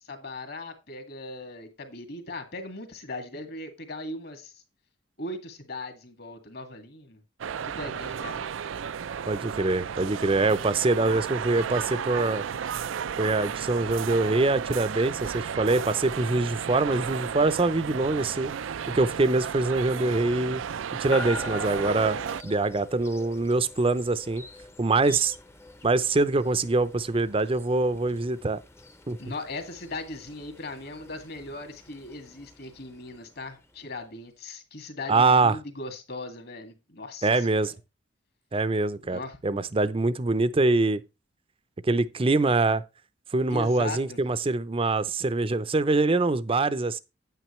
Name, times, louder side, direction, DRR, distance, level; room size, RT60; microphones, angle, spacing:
voice 1, 0.0-4.5 5.2-7.2 7.6-8.5 29.2-37.7 39.0-39.4 43.5-44.2, left 2 dB, 55° left, 2.1 m, -39 dB
sound 1, 7.4-22.4, right 7 dB, 85° right, 0.4 m, -33 dB
voice 2, 9.3-12.4 13.2-18.5 18.9-20.6 21.0-22.2 22.4-24.4 24.8-25.4 25.8-28.6 29.1-29.2 35.1-35.6 37.2-37.7 38.5-41.0 41.8-42.8 43.3-47.0, right 3 dB, 30° right, 0.6 m, -24 dB
sound 2, 21.1-34.1, left 2 dB, 15° left, 0.7 m, -44 dB
9.2 x 9.1 x 3.1 m
head